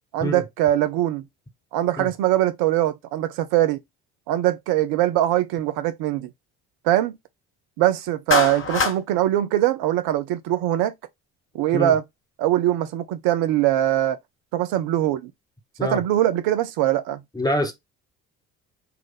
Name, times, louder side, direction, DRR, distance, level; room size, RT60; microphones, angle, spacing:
voice 1, 0.1-1.2 1.7-3.8 4.3-6.3 6.8-7.1 7.8-10.9 11.5-12.0 12.4-14.2 14.5-15.3 15.8-17.2, right 13 dB, 60° right, 0.6 m, -22 dB
Clapping, 8.3-9.0, left 4 dB, 30° left, 1.2 m, -22 dB
voice 2, 17.3-17.7, left 1 dB, 10° left, 1.2 m, -25 dB
4.1 x 2.4 x 4.0 m
figure-of-eight pair, 50°, 42 cm